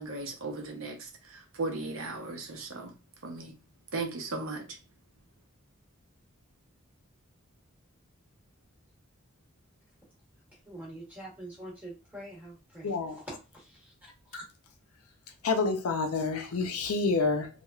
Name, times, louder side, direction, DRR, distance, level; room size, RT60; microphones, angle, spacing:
voice 1, 0.0-2.9 3.2-3.5 3.9-4.6, right 3 dB, 70° right, 0.7 m, -36 dB
voice 2, 10.6-13.2 13.5-14.4, right 1 dB, 5° right, 0.8 m, -45 dB
voice 3, 12.8-13.2 15.4-17.5, left 4 dB, 85° left, 0.5 m, -28 dB
3.0 x 2.3 x 2.3 m
head